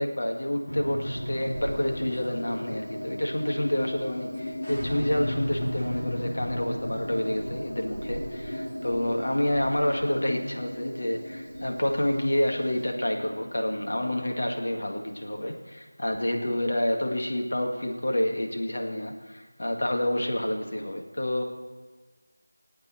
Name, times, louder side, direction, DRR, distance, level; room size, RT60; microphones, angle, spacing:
voice 1, 0.0-21.4, left 1 dB, 60° left, 2 dB, 1.9 m, -28 dB
sound 1, 0.7-15.3, equal, 90° left, 2.8 m, -36 dB
sound 2, 1.0-12.9, right 1 dB, 30° right, 1.1 m, -47 dB
18.5 x 8.6 x 4.4 m, 1.3 s
figure-of-eight pair, 175°, 0 cm